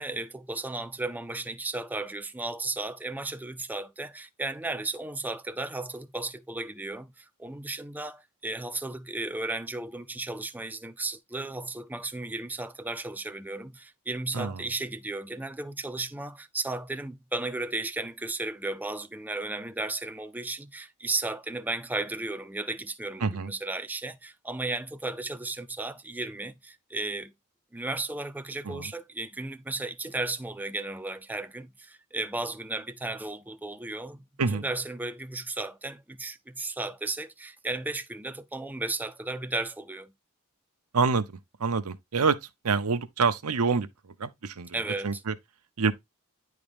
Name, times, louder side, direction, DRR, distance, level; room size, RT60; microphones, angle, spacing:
voice 1, 0.0-27.3 27.7-34.2 34.5-40.1 44.7-45.2, right 2 dB, 10° right, 0.4 m, -34 dB
voice 2, 23.2-23.5 28.6-28.9 34.4-34.7 40.9-41.2 41.6-42.4 42.6-43.9 44.2-44.8 45.0-45.3 45.8-45.9, right 4 dB, 85° right, 0.8 m, -26 dB
9.7 x 3.8 x 3.4 m
head